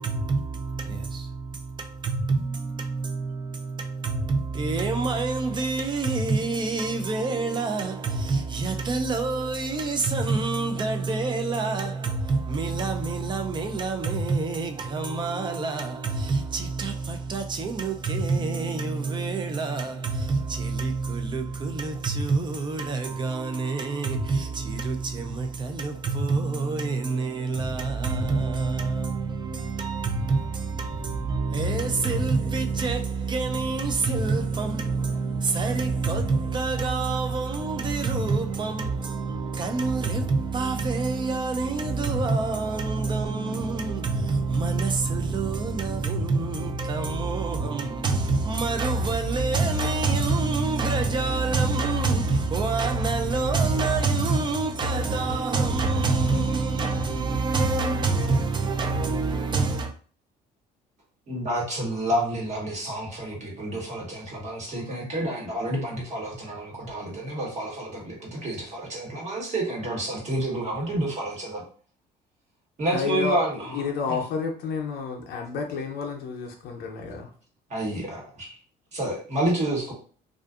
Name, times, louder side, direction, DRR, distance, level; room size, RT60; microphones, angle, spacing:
voice 1, 0.0-59.9, right 3 dB, 25° right, 0.4 m, -26 dB
voice 2, 61.3-71.6 72.8-73.8 74.1-74.2 77.7-78.5 78.9-79.9, right 1 dB, 40° right, 1.1 m, -29 dB
voice 3, 72.9-73.4 73.7-77.3, left 5 dB, 75° left, 0.6 m, -30 dB
2.5 x 2.4 x 2.4 m
cardioid pair, 110°, 17 cm